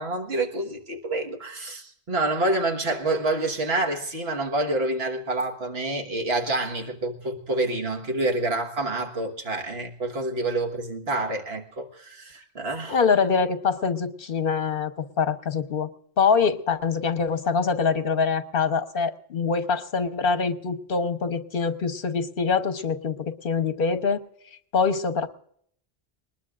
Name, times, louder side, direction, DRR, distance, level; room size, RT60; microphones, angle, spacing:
voice 1, 0.0-13.0, right 2 dB, 75° right, 1.8 m, -27 dB
voice 2, 12.9-15.9 16.2-24.2 24.7-25.3, left 5 dB, 60° left, 1.2 m, -24 dB
20.5 x 20.0 x 2.5 m
omnidirectional pair, 1.1 m